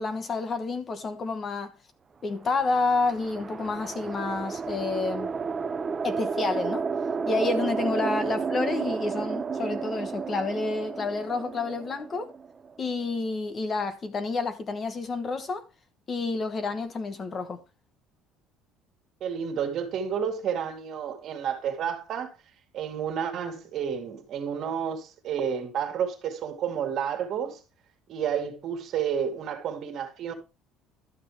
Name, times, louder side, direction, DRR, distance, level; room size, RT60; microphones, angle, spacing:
voice 1, 0.0-1.7 2.2-5.3 6.0-6.8 7.3-12.3 12.8-15.6 16.1-17.6, left 3 dB, 30° left, 1.1 m, -29 dB
sound 1, 2.5-12.9, right 5 dB, 25° right, 0.5 m, -32 dB
voice 2, 19.2-22.3 22.7-27.6 28.1-30.3, right 8 dB, 50° right, 2.2 m, -30 dB
12.0 x 6.8 x 3.3 m
cardioid pair, 145°, 0 cm